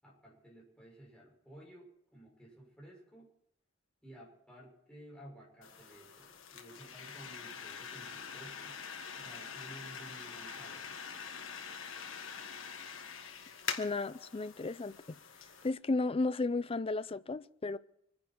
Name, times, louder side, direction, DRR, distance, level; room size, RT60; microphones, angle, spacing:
voice 1, 0.0-3.3 4.0-8.8 9.1-10.9, right 1 dB, 5° left, 6.3 m, -54 dB
sound 1, 5.6-15.7, left 6 dB, 70° left, 1.7 m, -45 dB
voice 2, 13.8-15.2 15.6-17.8, left 3 dB, 30° left, 0.5 m, -34 dB
25.5 x 10.5 x 4.6 m
head